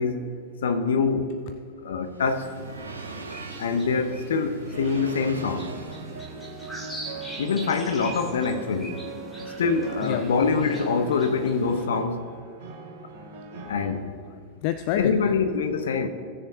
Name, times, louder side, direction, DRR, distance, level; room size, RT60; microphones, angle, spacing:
voice 1, 0.0-1.4 1.8-2.5 3.6-5.7 7.4-9.0 9.6-12.2 13.7-14.1 15.0-16.1, left 5 dB, 65° left, 0.8 m, -25 dB
sound 1, 1.6-6.6, right 3 dB, 80° right, 0.8 m, -41 dB
sound 2, 2.2-11.8, right 1 dB, 10° left, 2.2 m, -42 dB
sound 3, 4.7-13.9, right 4 dB, 50° right, 2.0 m, -42 dB
voice 2, 13.2-13.7 14.2-15.3 15.6-15.7, left 12 dB, 45° left, 0.4 m, -31 dB
17.5 x 6.8 x 2.8 m
figure-of-eight pair, 90°, 0 cm